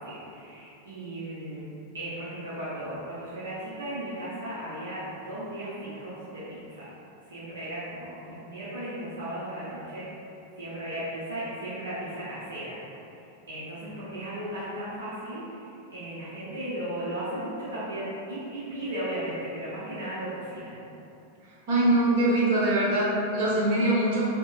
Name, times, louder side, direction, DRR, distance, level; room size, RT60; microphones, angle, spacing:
voice 1, 0.0-1.6 1.9-6.9 7.2-10.1 10.5-12.8 13.1-13.2 13.5-20.8, right 1 dB, 70° right, -10 dB, 0.8 m, -36 dB
voice 2, 21.7-24.3, right 1 dB, 50° right, -6 dB, 1.1 m, -23 dB
5.4 x 2.9 x 2.5 m, 2.8 s
figure-of-eight pair, 90°, 0 cm